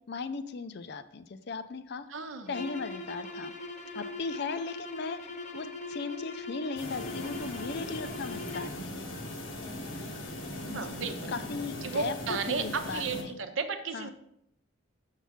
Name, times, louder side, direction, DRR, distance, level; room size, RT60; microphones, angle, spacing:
voice 1, 0.1-2.1 2.5-3.5 3.9-9.1 10.7-11.0 11.3-13.4 13.9-14.1, left 4 dB, 55° left, 12 dB, 0.5 m, -37 dB
voice 2, 2.1-2.6 10.7-11.3 11.8-14.1, right 5 dB, 75° right, 7 dB, 0.8 m, -34 dB
sound 1, 2.5-8.8, left 2 dB, 40° left, 0.8 m, -41 dB
sound 2, 6.8-13.2, left 1 dB, 80° left, 1.0 m, -39 dB
7.2 x 5.7 x 3.6 m, 0.79 s
head